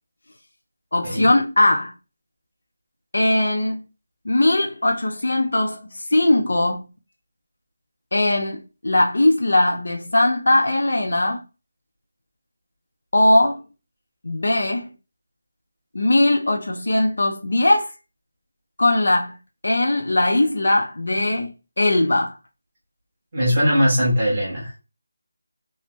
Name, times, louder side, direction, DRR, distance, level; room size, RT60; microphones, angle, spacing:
voice 1, 0.9-1.9 3.1-3.8 4.3-5.8 6.1-6.8 8.1-11.4 13.1-13.6 14.2-14.9 15.9-17.9 18.8-19.3 19.6-22.3, left 1 dB, 60° left, 0.5 m, -19 dB
voice 2, 23.3-24.8, equal, 15° right, 1.2 m, -20 dB
3.3 x 2.0 x 3.0 m
figure-of-eight pair, 180°, 0 cm